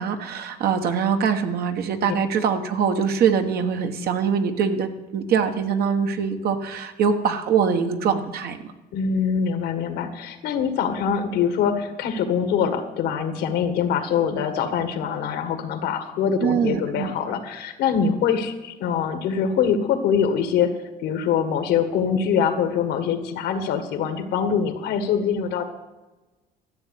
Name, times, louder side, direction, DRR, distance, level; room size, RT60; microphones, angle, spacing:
voice 1, 0.0-8.7 16.4-17.1, right 6 dB, 65° right, 6 dB, 1.4 m, -23 dB
voice 2, 8.9-20.7 21.0-25.6, left 7 dB, 85° left, 8 dB, 1.8 m, -24 dB
13.5 x 7.6 x 8.2 m, 1.1 s
cardioid pair, 110°, 17 cm